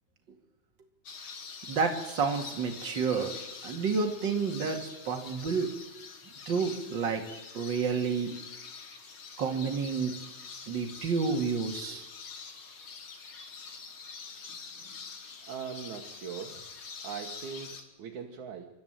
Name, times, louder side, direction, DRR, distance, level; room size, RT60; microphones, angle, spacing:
sound 1, 1.0-17.8, left 5 dB, 45° left, 2.1 m, -45 dB
voice 1, 1.7-3.3 3.6-5.7 6.5-7.2 7.5-8.3 9.4-10.1 10.7-12.1, right 5 dB, 35° right, 3 dB, 2.4 m, -30 dB
voice 2, 14.5-15.0 15.4-16.6 17.0-18.7, right 7 dB, 60° right, 0 dB, 2.6 m, -41 dB
26.5 x 12.5 x 9.1 m, 1.1 s
omnidirectional pair, 4.1 m